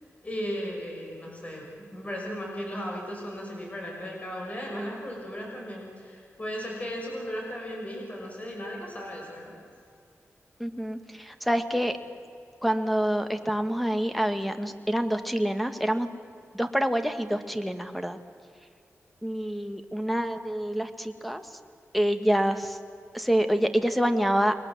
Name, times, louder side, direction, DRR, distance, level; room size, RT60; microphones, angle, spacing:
voice 1, 0.2-9.5, equal, 30° left, -1 dB, 6.0 m, -36 dB
voice 2, 10.6-12.0 12.6-16.1 16.5-18.2 19.2-21.6 21.9-22.8 23.1-24.5, equal, ahead, 8 dB, 1.7 m, -27 dB
30.0 x 22.0 x 7.5 m, 2.4 s
wide cardioid pair, 105°, 5 cm